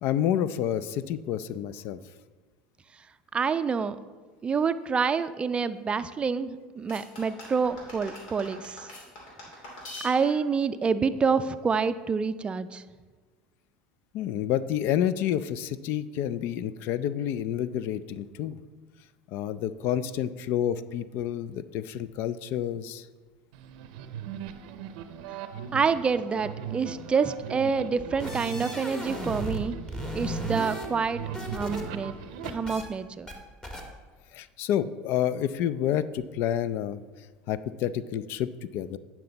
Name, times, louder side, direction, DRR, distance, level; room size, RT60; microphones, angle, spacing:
voice 1, 0.0-2.0 14.1-18.6 19.3-23.1 34.3-37.0 37.5-39.0, left 10 dB, 60° left, 15 dB, 0.4 m, -29 dB
voice 2, 3.3-4.0 4.4-8.9 10.0-12.8 25.7-29.8 30.1-31.2 31.5-32.1 32.5-33.3, right 5 dB, 25° right, 12 dB, 0.4 m, -27 dB
sound 1, 6.9-10.5, left 1 dB, 80° left, 2.7 m, -43 dB
sound 2, 23.5-32.5, right 9 dB, 75° right, 0.6 m, -38 dB
sound 3, 28.0-29.6 29.9-31.8 32.1-32.8 33.3-33.4 33.6-33.8, left 1 dB, 15° left, 1.4 m, -36 dB
9.4 x 5.9 x 4.0 m, 1.4 s
supercardioid pair, 95°, 4 cm